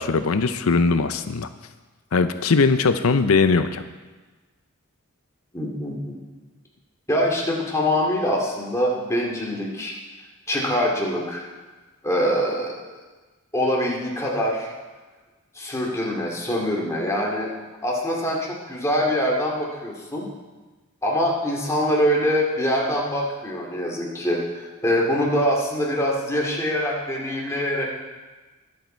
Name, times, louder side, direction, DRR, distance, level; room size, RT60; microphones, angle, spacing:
voice 1, 0.0-1.5 2.1-3.8, left 4 dB, 90° left, 10 dB, 0.6 m, -20 dB
voice 2, 5.5-6.2 7.1-9.9 10.5-11.4 12.0-12.7 13.5-14.7 15.6-17.5 17.8-20.3 21.0-27.8, equal, 15° left, -2 dB, 2.4 m, -24 dB
22.0 x 7.7 x 4.5 m, 1.3 s
head